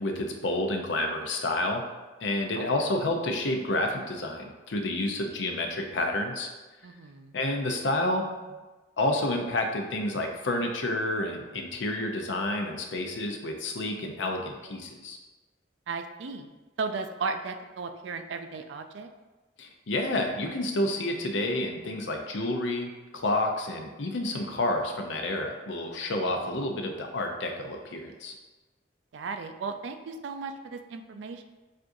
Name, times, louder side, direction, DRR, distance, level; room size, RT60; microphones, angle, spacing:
voice 1, 0.0-1.8 2.2-6.5 7.3-8.6 9.0-15.2 19.6-28.3, left 1 dB, 75° left, 3 dB, 0.6 m, -29 dB
voice 2, 6.8-7.4 15.9-16.5 16.8-19.1 29.1-31.4, right 4 dB, 70° right, 8 dB, 0.4 m, -35 dB
7.4 x 2.5 x 2.6 m, 1.2 s
head